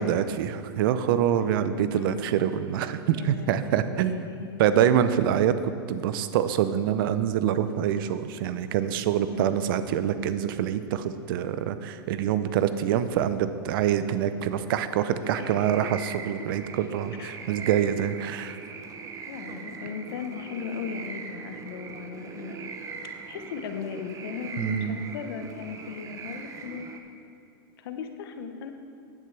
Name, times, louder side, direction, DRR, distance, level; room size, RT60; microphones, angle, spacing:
voice 1, 0.0-4.3 4.6-18.6 24.6-25.0, right 9 dB, 60° right, 12 dB, 0.6 m, -25 dB
voice 2, 1.9-2.4 3.1-4.7 9.3-9.6 15.4-15.6 15.8-15.9 17.2-17.7 19.3-26.9 27.8-28.7, left 6 dB, 70° left, 6 dB, 1.0 m, -38 dB
sound 1, 15.2-27.0, right 5 dB, 25° right, 0.7 m, -40 dB
10.5 x 9.9 x 3.3 m, 2.5 s
hypercardioid pair, 120°, 13 cm